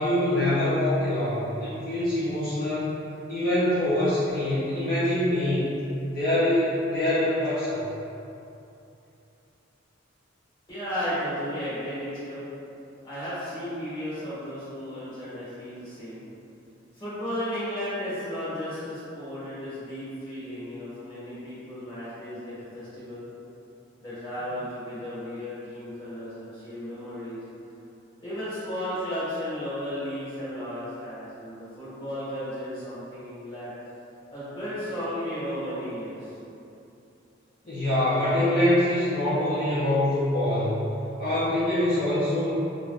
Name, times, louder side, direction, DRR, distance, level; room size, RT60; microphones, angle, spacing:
voice 1, 0.0-2.9 3.3-5.8 6.1-7.8 37.6-40.9 41.2-42.5, left 1 dB, 50° left, -12 dB, 0.6 m, -24 dB
voice 2, 10.7-12.5 13.0-16.2 16.9-23.2 24.0-27.4 28.2-33.7 34.3-36.3, equal, 25° left, -13 dB, 1.4 m, -34 dB
3.3 x 2.6 x 2.3 m, 2.8 s
head